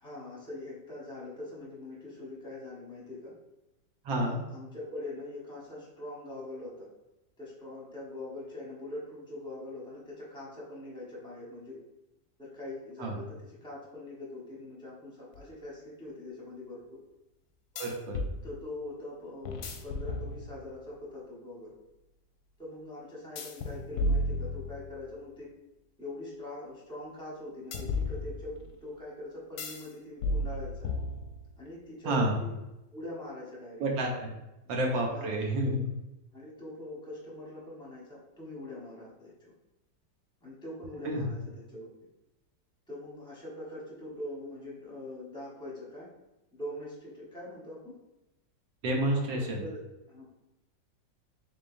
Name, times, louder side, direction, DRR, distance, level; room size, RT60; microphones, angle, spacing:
voice 1, 0.0-3.3 4.1-6.9 7.4-11.8 12.4-17.0 18.4-21.7 22.6-25.5 26.0-30.9 31.6-32.5 32.9-33.8 34.6-35.4 36.3-39.5 40.4-41.9 42.9-46.1 46.5-48.0 49.1-50.2, left 1 dB, 5° left, -6 dB, 0.7 m, -43 dB
voice 2, 4.0-4.4 13.0-13.2 17.8-18.2 32.0-32.4 33.8-34.3 34.7-35.8 41.0-41.2 48.8-49.6, right 1 dB, 80° right, 1 dB, 1.5 m, -29 dB
sound 1, 15.3-15.4 17.8-18.4 19.4-20.8 23.4-25.1 27.7-28.7 29.6-29.9 30.2-31.6, left 1 dB, 70° left, 1.0 m, -33 dB
3.9 x 3.7 x 2.5 m, 0.96 s
omnidirectional pair, 2.0 m